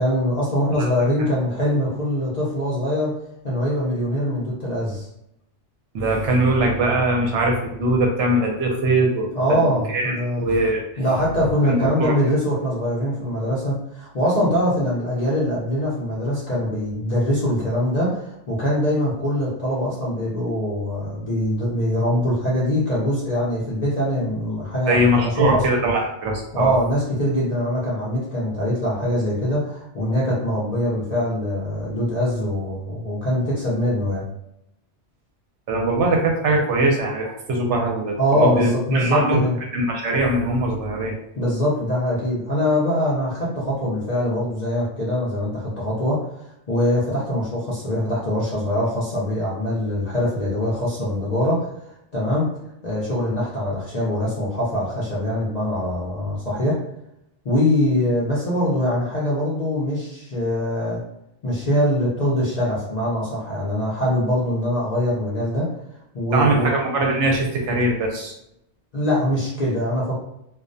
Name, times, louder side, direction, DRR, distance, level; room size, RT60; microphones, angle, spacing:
voice 1, 0.0-3.1 3.4-5.1 9.3-10.4 11.0-25.6 26.5-34.2 38.2-39.6 41.4-46.3 46.7-51.7 52.1-52.5 52.8-56.8 57.4-61.0 61.4-65.7 66.1-66.7 68.9-70.2, left 1 dB, 50° left, -7 dB, 0.5 m, -23 dB
voice 2, 5.9-10.8 11.6-12.1 24.9-26.8 35.7-39.4 39.7-41.1 66.3-68.3, right 1 dB, 75° right, 1 dB, 0.9 m, -21 dB
2.3 x 2.1 x 2.5 m, 0.81 s
omnidirectional pair, 1.3 m